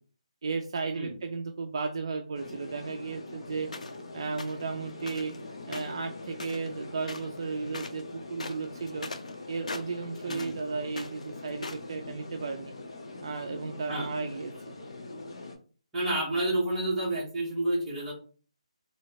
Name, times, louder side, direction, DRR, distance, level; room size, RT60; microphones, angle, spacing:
voice 1, 0.4-3.7 4.1-5.3 5.7-9.1 9.5-12.7 13.2-14.8, right 4 dB, 45° right, 5 dB, 0.3 m, -34 dB
sound 1, 2.3-15.6, left 2 dB, 55° left, 0.9 m, -43 dB
sound 2, 3.7-4.0 4.4-4.6 5.0-5.4 5.7-6.8 7.0-7.4 7.7-8.0 8.3-10.6 10.9-11.9, left 3 dB, 80° left, 0.5 m, -40 dB
voice 2, 10.3-10.6 13.9-14.1 15.9-18.1, right 1 dB, 10° right, -7 dB, 1.0 m, -29 dB
3.0 x 2.7 x 2.9 m, 0.40 s
hypercardioid pair, 170°, 4 cm